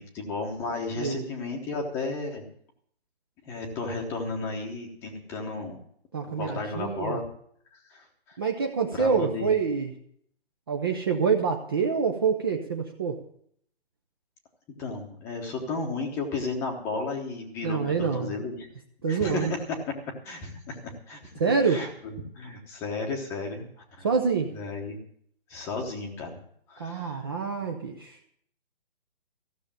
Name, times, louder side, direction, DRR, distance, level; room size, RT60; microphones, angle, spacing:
voice 1, 0.0-2.4 3.4-5.8 6.2-7.2 7.7-8.4 8.9-9.5 14.8-18.7 19.1-20.0 20.2-21.3 21.6-24.1 24.4-25.0 25.5-26.4 26.7-27.3, left 3 dB, 10° left, 2 dB, 1.0 m, -34 dB
voice 2, 6.1-7.2 8.4-9.9 10.7-13.2 17.6-18.3 19.0-19.5 21.4-21.8 24.0-24.6 26.8-28.2, right 5 dB, 25° right, 3 dB, 0.6 m, -26 dB
15.0 x 6.7 x 8.7 m, 0.65 s
hypercardioid pair, 165°, 32 cm